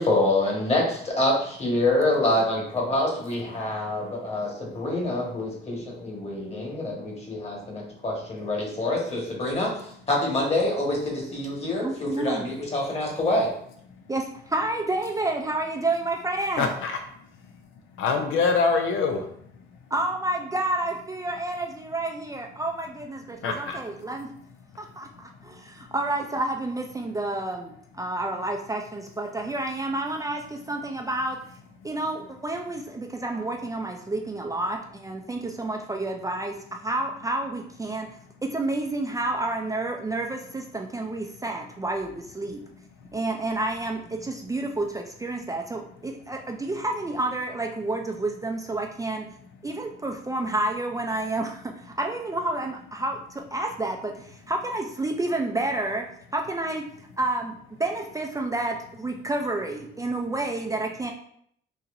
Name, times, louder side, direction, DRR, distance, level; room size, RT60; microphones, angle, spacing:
voice 1, 0.0-13.5, left 1 dB, 30° left, -2 dB, 1.4 m, -26 dB
voice 2, 3.7-4.0 4.3-4.4 6.2-6.4 6.7-8.0 13.9-14.1 16.6-19.9 23.3-24.1 24.7-25.9 43.0-43.1, left 4 dB, 85° left, 5 dB, 0.5 m, -29 dB
voice 3, 11.8-12.5 14.1-16.7 19.9-24.3 24.8-31.4 31.8-38.1 38.4-42.6 43.1-49.2 49.6-56.1 56.3-56.8 57.2-61.1, right 2 dB, 15° right, 2 dB, 0.4 m, -30 dB
4.1 x 2.8 x 2.6 m, 0.67 s
cardioid pair, 90°, 20 cm